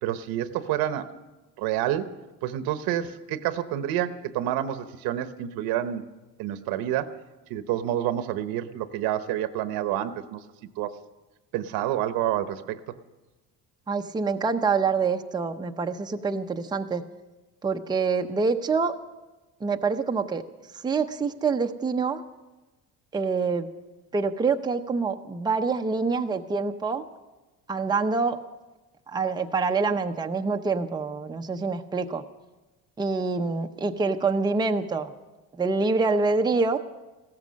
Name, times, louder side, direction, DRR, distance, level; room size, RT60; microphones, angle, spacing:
voice 1, 0.0-1.1 1.6-2.1 2.4-6.0 6.4-7.1 7.5-10.4 10.8-10.9 11.5-12.8, right 12 dB, 85° right, 11 dB, 1.0 m, -28 dB
voice 2, 13.9-17.0 17.6-18.9 19.6-20.4 20.8-22.2 23.1-23.7 24.1-27.0 27.7-28.4 29.1-32.2 33.0-35.1 35.5-36.8, right 4 dB, 10° right, 5 dB, 0.7 m, -26 dB
16.0 x 14.0 x 6.3 m, 1.1 s
cardioid pair, 125°, 35 cm